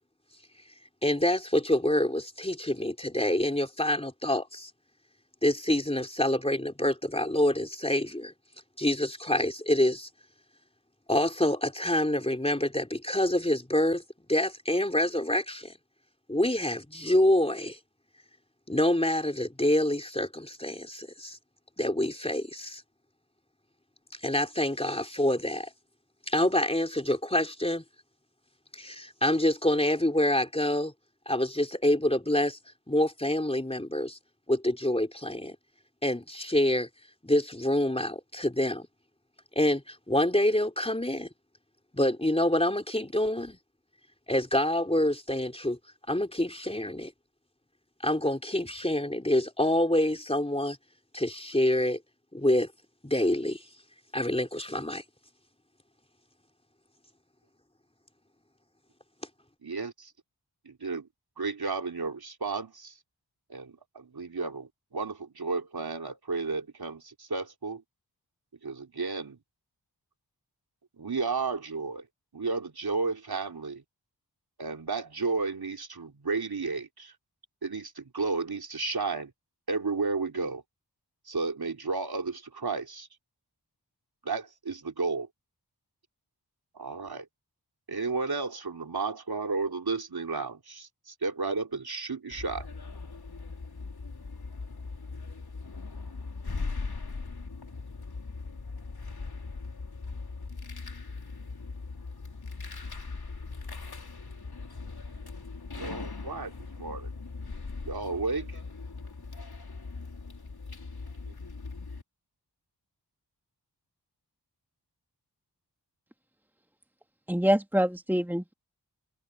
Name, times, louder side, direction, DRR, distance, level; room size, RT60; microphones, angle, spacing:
voice 1, 1.0-4.7 5.4-8.3 8.8-10.1 11.1-14.0 14.3-15.7 16.3-17.8 18.7-21.4 21.8-22.8 24.2-25.7 26.3-27.8 28.7-30.9 31.3-32.6 32.9-34.2 34.5-35.6 36.0-36.9 37.2-38.9 39.6-41.3 41.9-43.6 44.3-45.8 46.1-47.1 48.0-50.8 51.1-52.0 52.3-52.7 53.0-53.6 54.1-55.0, left 1 dB, 15° left, 3.6 m, -26 dB
voice 2, 59.6-60.1 60.6-61.1 61.4-62.9 63.5-67.8 68.6-69.4 71.0-72.1 72.3-73.8 74.6-77.1 77.6-79.3 79.7-80.6 81.3-83.1 84.2-85.3 86.7-87.3 87.9-92.7 105.7-107.1 107.9-108.6 111.3-111.4, right 4 dB, 65° right, 3.6 m, -33 dB
sound 1, 92.3-112.0, left 4 dB, 65° left, 4.5 m, -40 dB
voice 3, 117.3-118.5, equal, 5° right, 2.1 m, -25 dB
wide cardioid pair, 50°, 40 cm